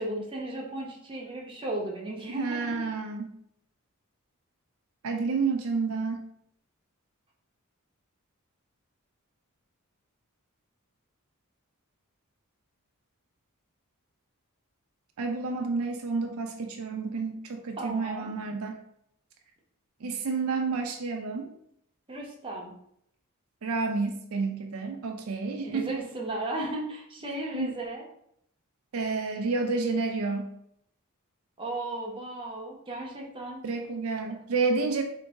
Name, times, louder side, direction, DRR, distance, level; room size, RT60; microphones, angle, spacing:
voice 1, 0.0-2.9 17.8-18.3 22.1-22.7 25.6-28.0 31.6-33.6, right 1 dB, 25° right, -2 dB, 0.8 m, -35 dB
voice 2, 2.3-3.3 5.0-6.3 15.2-18.8 20.0-21.5 23.6-26.0 27.5-27.8 28.9-30.5 33.6-35.0, right 4 dB, 75° right, 4 dB, 0.5 m, -30 dB
3.8 x 2.7 x 3.5 m, 0.71 s
head